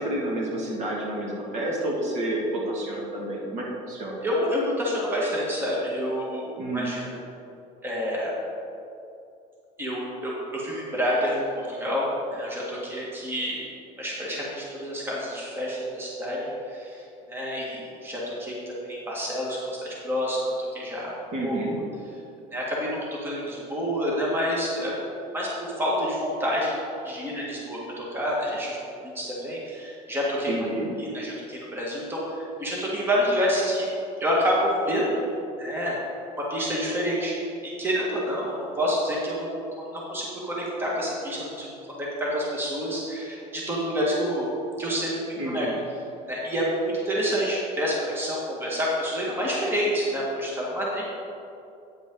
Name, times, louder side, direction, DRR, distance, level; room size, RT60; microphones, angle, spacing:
voice 1, 0.0-4.2 6.6-6.9 21.3-21.8 30.5-30.9 45.4-45.8, right 1 dB, 50° right, -3 dB, 2.1 m, -29 dB
voice 2, 4.2-7.0 7.8-8.3 9.8-13.6 14.0-21.1 21.4-21.6 22.5-24.9 25.3-26.7 27.0-30.5 31.0-33.9 34.2-35.3 35.6-36.0 36.5-37.3 37.6-41.7 42.0-44.5 44.8-45.1 45.5-45.7 46.3-51.0, equal, 15° right, -5 dB, 1.7 m, -28 dB
9.2 x 8.5 x 3.8 m, 2.7 s
cardioid pair, 145°, 15 cm